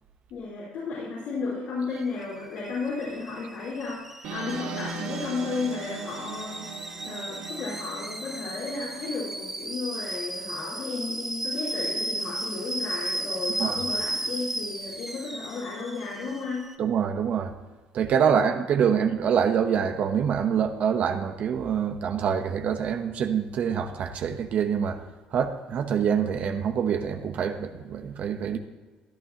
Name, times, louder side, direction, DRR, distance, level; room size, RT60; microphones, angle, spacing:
voice 1, 0.3-6.7 7.0-16.6 18.3-18.5, left 4 dB, 80° left, 4.4 m, -33 dB
Alarm / Boiling, 1.9-16.7, right 1 dB, 10° right, 1.1 m, -35 dB
sound 1, 4.2-9.2, right 4 dB, 85° right, 1.7 m, -39 dB
voice 2, 16.8-17.5 17.9-25.0 25.3-28.6, right 7 dB, 55° right, 1.0 m, -25 dB
17.0 x 11.0 x 3.0 m
cardioid pair, 110°, 3 cm